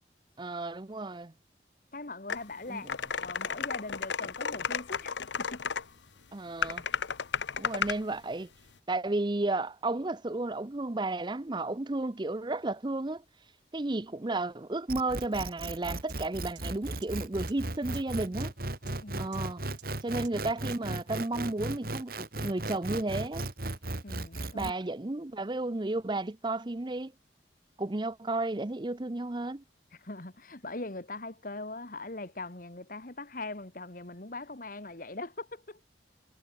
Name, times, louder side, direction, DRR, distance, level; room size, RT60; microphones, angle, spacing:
voice 1, 0.4-1.3 2.7-3.0 6.3-6.8 7.6-8.5 8.9-13.2 13.7-18.5 19.2-19.6 20.0-23.5 24.5-27.1 27.8-29.6, right 2 dB, 25° right, 0.7 m, -33 dB
voice 2, 1.9-2.9 3.2-5.7 19.0-19.3 24.0-24.7 30.0-35.8, left 2 dB, 50° left, 2.0 m, -41 dB
sound 1, 2.3-2.4 2.9-5.8 6.6-8.0, left 6 dB, 90° left, 1.0 m, -33 dB
sound 2, 14.9-24.7, right 2 dB, 55° right, 2.8 m, -36 dB
sound 3, 15.6-15.7 16.1-16.2 16.6-16.7 17.0-17.1 17.5-17.6 17.9-18.0 18.4-18.5 18.9-19.0 19.3-19.4 19.8-19.9 20.2-20.3 20.7-20.8, right 13 dB, 90° right, 3.4 m, -50 dB
head